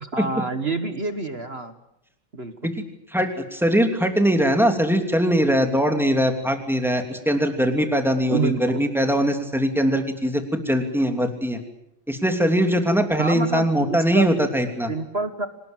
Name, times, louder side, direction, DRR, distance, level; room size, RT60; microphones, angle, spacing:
voice 1, 0.0-1.7 2.3-2.7 8.3-8.9 13.2-14.3 14.9-15.5, right 3 dB, 35° right, 9 dB, 1.4 m, -28 dB
voice 2, 3.1-11.6 12.1-14.9, equal, ahead, 5 dB, 2.8 m, -21 dB
25.0 x 19.5 x 9.0 m, 0.81 s
omnidirectional pair, 2.2 m